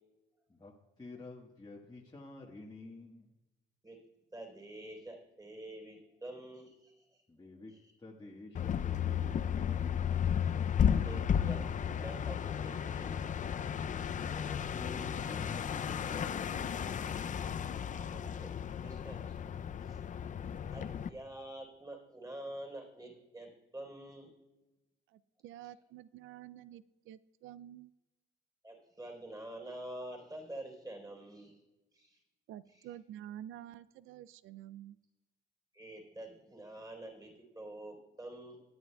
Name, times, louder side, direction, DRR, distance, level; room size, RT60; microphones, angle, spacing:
voice 1, 0.5-3.3 7.3-7.7 8.0-9.3 9.6-10.3 14.1-17.4, left 2 dB, 20° left, -3 dB, 1.4 m, -50 dB
voice 2, 4.3-7.1 7.7-7.9 10.8-13.2 18.1-19.3 19.8-20.0 20.7-24.3 28.6-31.5 31.9-32.2 32.7-33.0 35.7-38.6, right 1 dB, 20° right, 0 dB, 3.8 m, -47 dB
sound 1, 8.5-21.1, left 8 dB, 40° left, 0.4 m, -34 dB
voice 3, 25.1-27.9 32.5-35.0, right 12 dB, 80° right, 17 dB, 0.4 m, -49 dB
20.5 x 9.6 x 2.3 m, 1.1 s
cardioid pair, 90°, 20 cm